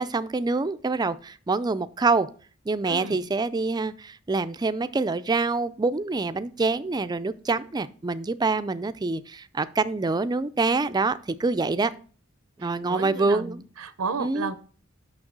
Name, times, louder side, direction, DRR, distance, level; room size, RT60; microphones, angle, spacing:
voice 1, 0.0-2.3 2.7-11.9 12.6-13.6 14.2-14.5, right 3 dB, 20° right, 12 dB, 0.4 m, -26 dB
voice 2, 2.9-3.3 12.6-14.6, right 4 dB, 90° right, 12 dB, 0.7 m, -33 dB
6.3 x 6.2 x 6.0 m, 0.41 s
head